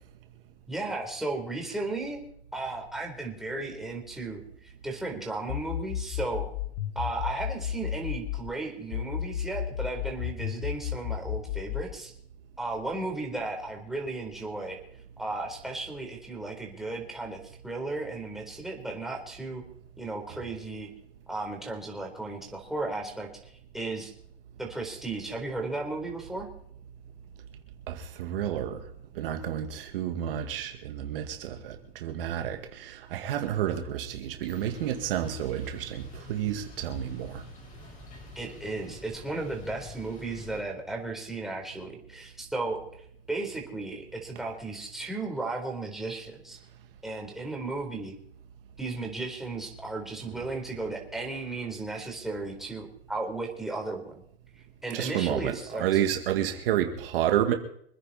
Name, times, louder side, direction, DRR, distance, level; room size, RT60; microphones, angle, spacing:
voice 1, 0.7-2.2 2.5-6.4 7.0-12.1 12.6-14.8 15.2-19.6 20.0-20.9 21.3-24.1 24.6-26.5 38.4-46.6 47.0-48.1 48.8-54.2 54.8-55.9, right 2 dB, ahead, 0 dB, 3.9 m, -35 dB
sound 1, 5.5-8.5 8.9-11.9, left 11 dB, 60° left, 1.1 m, -33 dB
voice 2, 27.9-28.8 29.2-37.4 54.9-57.5, right 11 dB, 65° right, 5 dB, 2.1 m, -30 dB
sound 2, 34.5-40.6, left 4 dB, 25° left, 4.8 m, -48 dB
26.0 x 9.9 x 4.3 m, 0.67 s
hypercardioid pair, 125°, 30 cm